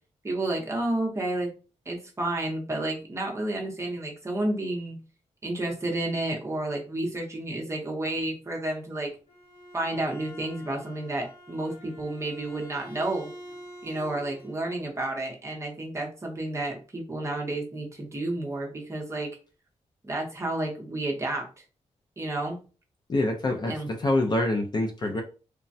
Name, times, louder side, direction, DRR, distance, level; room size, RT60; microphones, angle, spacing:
voice 1, 0.2-1.5 1.9-5.0 5.4-9.1 9.7-13.3 13.8-19.3 20.0-21.5 22.2-22.6 23.7-23.9, right 2 dB, 20° right, 0 dB, 0.7 m, -31 dB
Bowed string instrument, 9.1-14.6, equal, 50° left, 1.1 m, -46 dB
voice 2, 23.1-25.2, left 2 dB, 35° left, 3 dB, 0.5 m, -26 dB
3.2 x 2.1 x 2.6 m, 0.34 s
wide cardioid pair, 165°, 13 cm